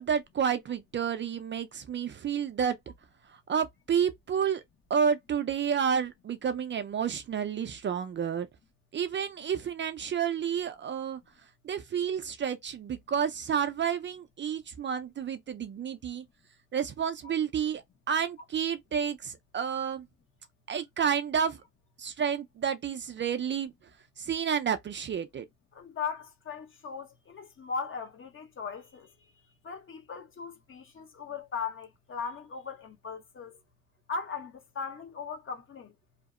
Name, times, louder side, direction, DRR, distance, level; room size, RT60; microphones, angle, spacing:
voice 1, 0.0-2.8 3.3-4.6 4.9-8.5 8.9-11.2 11.6-16.2 16.7-20.1 20.7-21.6 22.0-23.7 24.2-25.4, right 7 dB, 40° right, 0.4 m, -30 dB
voice 2, 25.7-29.1 29.6-33.5 34.1-35.9, left 5 dB, 45° left, 0.9 m, -38 dB
2.8 x 2.0 x 2.4 m
cardioid pair, 90°, 30 cm